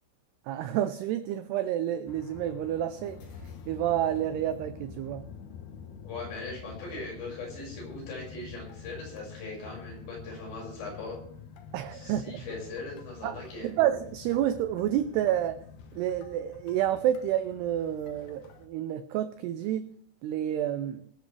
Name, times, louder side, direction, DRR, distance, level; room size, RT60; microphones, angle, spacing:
voice 1, 0.5-3.2 3.7-5.2 11.7-12.5 13.2-15.6 15.9-19.9 20.2-21.0, right 11 dB, 90° right, 11 dB, 2.3 m, -29 dB
sound 1, 2.1-18.7, left 6 dB, 85° left, 1.7 m, -47 dB
voice 2, 6.0-11.2 11.9-13.7, left 3 dB, 65° left, -2 dB, 8.1 m, -40 dB
21.0 x 12.5 x 3.4 m, 0.64 s
omnidirectional pair, 5.5 m